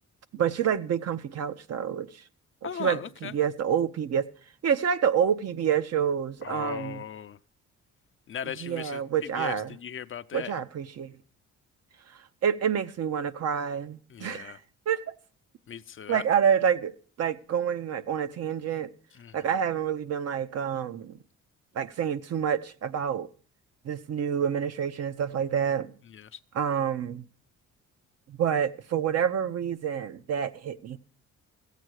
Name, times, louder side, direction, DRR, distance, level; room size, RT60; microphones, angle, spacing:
voice 1, 0.3-2.2 2.6-4.3 4.6-7.0 8.6-9.8 10.3-11.1 12.4-14.6 14.9-15.0 16.1-18.9 19.3-21.2 21.7-23.3 23.8-25.9 26.5-27.2 28.3-31.0, right 8 dB, 55° right, 0.8 m, -28 dB
voice 2, 2.6-3.3 6.4-7.4 8.3-9.0 9.3-10.6 14.1-14.6 15.7-16.2 19.1-19.5 26.1-26.4, left 9 dB, 45° left, 0.6 m, -38 dB
14.5 x 8.4 x 6.3 m
cardioid pair, 90°, 30 cm